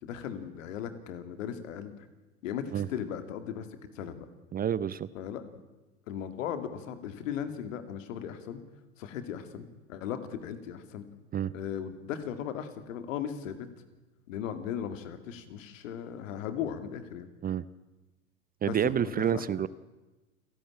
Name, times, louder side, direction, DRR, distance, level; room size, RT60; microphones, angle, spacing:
voice 1, 0.0-2.1 2.4-3.7 3.9-4.3 5.1-5.6 6.1-8.6 9.0-11.1 11.5-13.7 14.3-17.3 18.6-19.5, left 8 dB, 70° left, 10 dB, 2.5 m, -37 dB
voice 2, 4.5-5.1 11.3-11.5 17.4-17.6 18.6-19.7, right 9 dB, 20° right, 18 dB, 0.6 m, -28 dB
28.5 x 11.5 x 8.7 m, 1.2 s
hypercardioid pair, 85°, 40 cm